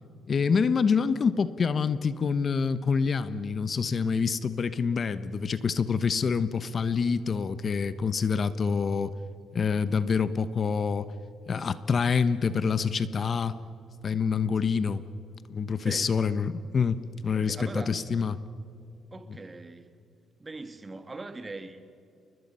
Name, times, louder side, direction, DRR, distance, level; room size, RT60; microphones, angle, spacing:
voice 1, 0.3-9.1 9.5-11.1 11.5-13.6 14.0-15.0 15.5-18.4, left 5 dB, 45° left, 1.0 m, -26 dB
voice 2, 15.8-16.1 17.3-18.0 19.1-19.9 20.4-21.8, right 3 dB, 25° right, 1.8 m, -40 dB
30.0 x 20.5 x 5.6 m
cardioid pair, 90°, 0 cm